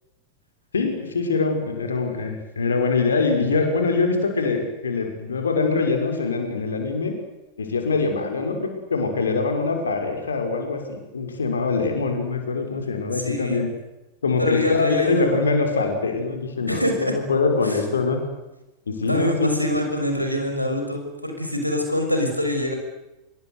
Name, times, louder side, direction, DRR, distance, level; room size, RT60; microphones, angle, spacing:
voice 1, 0.7-7.1 7.6-13.7 14.2-18.2 18.9-19.5, left 4 dB, 70° left, 5 dB, 5.8 m, -23 dB
voice 2, 13.1-13.6 14.4-15.4 16.7-17.1 17.6-17.8 19.1-22.7, left 1 dB, 90° right, 4 dB, 6.0 m, -25 dB
26.5 x 22.0 x 8.2 m, 1.0 s
figure-of-eight pair, 90°, 0 cm